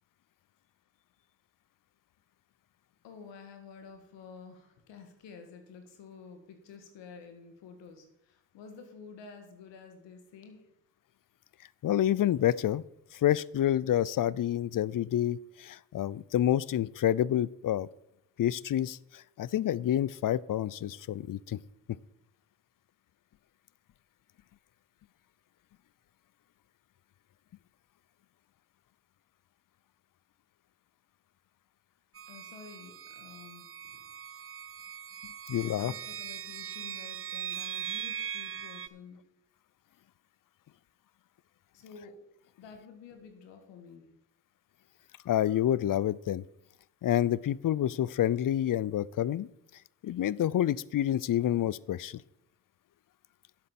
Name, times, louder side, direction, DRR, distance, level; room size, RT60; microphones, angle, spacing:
voice 1, 3.0-10.7 32.3-34.1 35.6-39.3 41.7-42.2 42.6-44.1, left 5 dB, 90° left, 6 dB, 1.7 m, -50 dB
voice 2, 11.8-12.8 13.1-17.9 18.4-21.6 35.5-35.9 45.3-46.4 47.0-49.5 50.0-52.2, left 11 dB, 50° left, 22 dB, 0.6 m, -28 dB
sound 1, 32.2-38.9, right 9 dB, 30° right, 0.6 m, -40 dB
10.5 x 7.7 x 5.9 m, 0.83 s
supercardioid pair, 45°, 42 cm